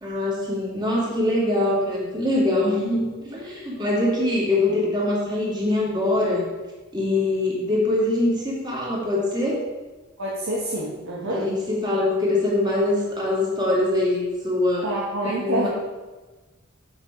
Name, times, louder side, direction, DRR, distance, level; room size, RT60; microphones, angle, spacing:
voice 1, 0.0-6.4 6.9-9.6 11.3-14.9 15.3-15.7, left 2 dB, 20° right, -5 dB, 2.8 m, -23 dB
voice 2, 10.2-11.5 14.8-15.7, right 1 dB, 90° right, -4 dB, 1.6 m, -27 dB
7.5 x 7.4 x 5.0 m, 1.2 s
head